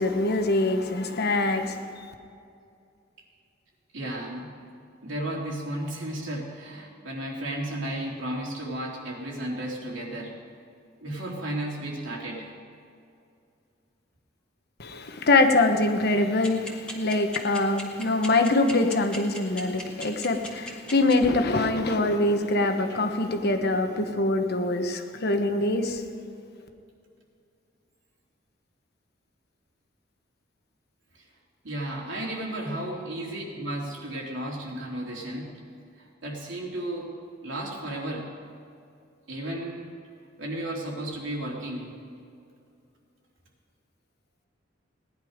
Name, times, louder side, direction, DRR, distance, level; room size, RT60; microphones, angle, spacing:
voice 1, 0.0-1.9 14.8-26.0, left 2 dB, 55° left, 1.2 m, -24 dB
voice 2, 3.9-4.5 5.0-10.3 11.0-12.5 31.1-31.2 31.6-35.6 36.0-37.1 37.4-38.3 39.3-39.9 40.4-41.9, right 1 dB, 80° right, 3.2 m, -33 dB
sound 1, 16.4-21.1, left 1 dB, 5° left, 2.0 m, -36 dB
18.0 x 11.0 x 5.1 m
head